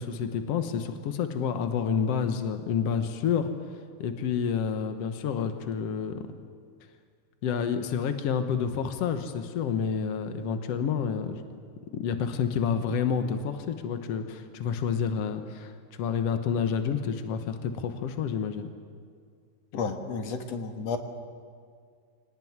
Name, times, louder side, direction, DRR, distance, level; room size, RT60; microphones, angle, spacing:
voice 1, 0.0-3.5 4.0-6.2 7.4-11.4 11.9-15.7 16.0-18.7, left 7 dB, 80° left, 8 dB, 1.4 m, -29 dB
voice 2, 19.7-21.0, left 5 dB, 55° left, 7 dB, 2.1 m, -32 dB
24.0 x 18.5 x 9.5 m, 2.1 s
omnidirectional pair, 4.6 m